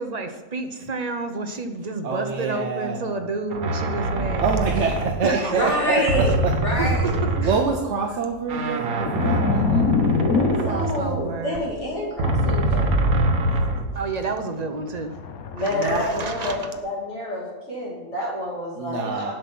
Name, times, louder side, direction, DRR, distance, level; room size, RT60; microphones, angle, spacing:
voice 1, 0.0-4.4 5.2-6.0 6.8-7.5 10.6-11.6 13.9-15.2 15.6-16.7, right 3 dB, 40° right, 6 dB, 0.7 m, -30 dB
voice 2, 2.0-3.2 4.4-6.5 7.0-7.1 7.3-11.0 14.0-14.1 15.7-16.1 18.8-19.3, right 5 dB, 60° right, 2 dB, 1.1 m, -27 dB
sound 1, 3.5-5.7 6.1-7.9 8.4-11.7 12.2-14.1, right 1 dB, 85° right, 1.4 m, -24 dB
voice 3, 5.6-6.3 6.6-7.2 10.4-13.1 15.5-19.3, left 1 dB, 55° left, -4 dB, 3.0 m, -27 dB
sound 2, 9.0-11.4 12.7-13.0 13.5-13.7 14.8-16.8, left 5 dB, 80° left, 1.3 m, -25 dB
7.7 x 5.7 x 7.6 m, 1.1 s
omnidirectional pair, 1.5 m